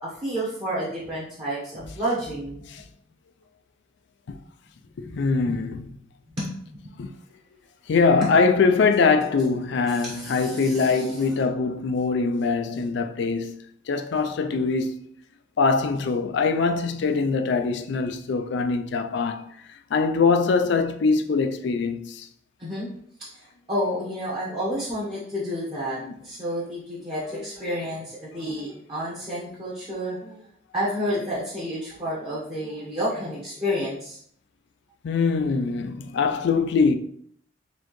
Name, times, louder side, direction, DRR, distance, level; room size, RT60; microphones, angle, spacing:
voice 1, 0.0-2.7 5.0-5.1 5.5-5.6 6.4-6.5 9.9-11.1 22.6-22.9 23.3-23.4 23.7-30.4 30.7-34.2, equal, 25° right, 0.9 m, -30 dB
voice 2, 5.0-6.0 7.0-7.1 7.9-13.5 13.9-15.1 15.6-19.5 19.9-22.3 26.0-26.2 35.0-37.0, left 4 dB, 65° left, 0.4 m, -23 dB
4.1 x 2.7 x 3.0 m
head